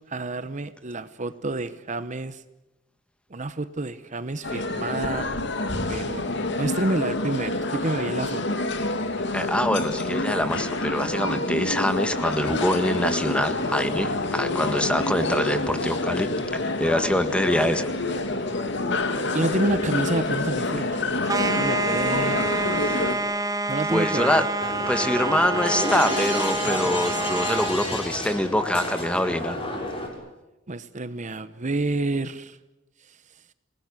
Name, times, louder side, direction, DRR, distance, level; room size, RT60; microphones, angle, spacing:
voice 1, 0.1-2.4 3.3-5.3 5.9-8.4 19.3-22.4 23.7-24.5 30.7-32.6 33.0-33.4, right 2 dB, 40° right, 12 dB, 1.0 m, -29 dB
sound 1, 4.4-23.2, left 2 dB, 65° left, 2.5 m, -27 dB
voice 2, 9.3-16.3 16.8-17.9 22.8-22.9 23.9-24.5 24.9-29.6, left 1 dB, 5° left, 9 dB, 1.7 m, -24 dB
sound 2, 21.3-27.8, right 2 dB, 20° right, 1.3 m, -27 dB
sound 3, 24.6-30.1, left 1 dB, 30° left, 6.8 m, -30 dB
28.0 x 19.0 x 9.8 m, 1.0 s
head